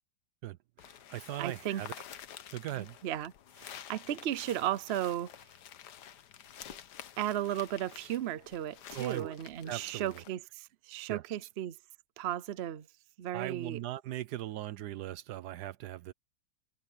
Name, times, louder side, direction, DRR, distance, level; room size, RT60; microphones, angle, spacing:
voice 1, 0.4-2.0 2.5-3.0 8.9-9.4 9.7-10.2 11.1-11.4 13.3-16.1, right 13 dB, 80° right, 1.2 m, -39 dB
sound 1, 0.8-10.3, left 10 dB, 80° left, 1.5 m, -50 dB
voice 2, 1.4-1.8 2.8-3.3 3.6-5.3 6.7-6.8 7.2-11.8 12.2-12.9 13.2-13.8, right 12 dB, 60° right, 0.7 m, -35 dB
omnidirectional pair, 1.8 m